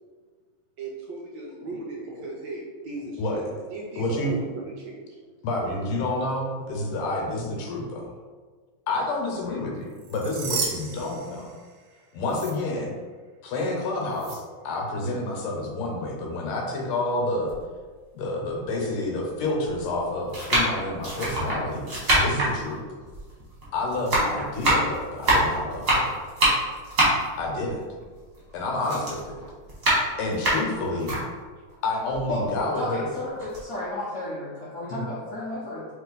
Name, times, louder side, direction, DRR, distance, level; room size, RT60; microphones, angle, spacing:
voice 1, 0.8-5.2, right 2 dB, 70° right, -2 dB, 1.2 m, -37 dB
voice 2, 4.0-4.5 5.4-8.1 8.9-11.5 12.1-12.9 13.4-17.5 18.1-21.9 22.2-22.8 23.7-26.1 27.4-27.8 28.5-29.4 30.2-31.2 31.8-33.1 34.9-35.1, left 2 dB, 80° left, 0 dB, 1.6 m, -29 dB
sound 1, 9.9-11.9 12.3-12.5 14.1-14.4, right 5 dB, 85° right, 1.6 m, -33 dB
sound 2, 17.5-17.6 18.5-18.6 19.5-19.8 20.3-23.7 23.9-28.5 28.8-31.2 31.7-31.8 32.1-33.1 33.4-33.6, right 1 dB, 35° right, 1.2 m, -24 dB
voice 3, 32.3-35.9, left 1 dB, 65° left, -8 dB, 0.8 m, -32 dB
3.4 x 3.1 x 3.8 m, 1.5 s
omnidirectional pair, 2.4 m